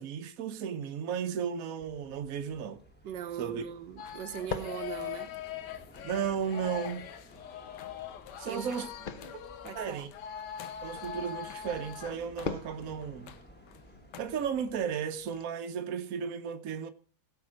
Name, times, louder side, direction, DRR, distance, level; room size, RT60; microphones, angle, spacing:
voice 1, 0.0-2.8 3.4-3.6 6.0-7.1 8.4-8.9 9.7-10.1 10.8-13.4 14.2-16.9, right 7 dB, 55° right, 1.1 m, -34 dB
sound 1, 1.8-14.9, equal, 5° left, 1.2 m, -56 dB
sound 2, 3.0-15.4, left 5 dB, 55° left, 0.5 m, -46 dB
voice 2, 3.0-5.3 8.4-8.8 9.0-9.3 9.6-10.1, right 9 dB, 70° right, 1.4 m, -40 dB
sound 3, 4.0-13.4 13.7-13.8 14.1-14.2, left 9 dB, 70° left, 1.4 m, -42 dB
16.5 x 5.8 x 6.2 m
omnidirectional pair, 2.0 m